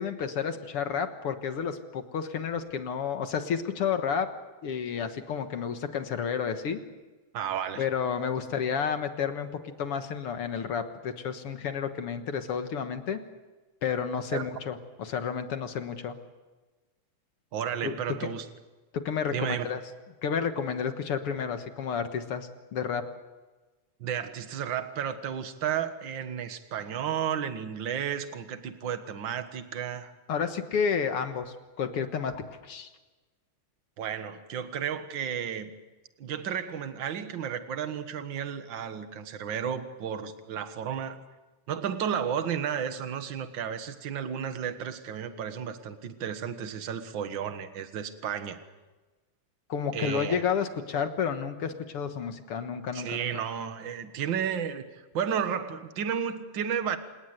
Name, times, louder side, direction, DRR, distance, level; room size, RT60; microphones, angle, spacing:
voice 1, 0.0-4.3 4.6-6.8 7.8-13.2 13.8-16.1 17.8-18.0 18.2-18.3 18.9-19.8 20.2-23.0 30.3-32.9 49.7-53.4, left 7 dB, 55° left, 8 dB, 2.0 m, -31 dB
voice 2, 7.3-7.9 14.3-14.4 17.5-18.5 19.3-19.7 24.0-30.1 34.0-35.7 36.2-41.2 41.7-48.6 49.9-50.4 52.9-57.0, right 8 dB, 45° right, 9 dB, 1.8 m, -33 dB
28.5 x 19.0 x 8.1 m, 1.2 s
omnidirectional pair, 3.4 m